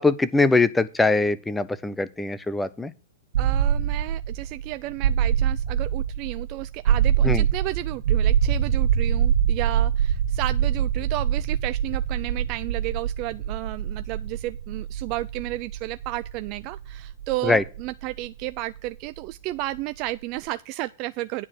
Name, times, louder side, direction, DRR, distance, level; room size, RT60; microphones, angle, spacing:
voice 1, 0.0-2.9 7.2-7.4 17.4-17.6, left 3 dB, 10° left, 0.7 m, -22 dB
sound 1, 3.3-19.2, right 9 dB, 70° right, 1.7 m, -24 dB
voice 2, 3.4-21.5, right 18 dB, 45° right, 0.4 m, -32 dB
9.7 x 4.7 x 7.5 m
hypercardioid pair, 115°, 0 cm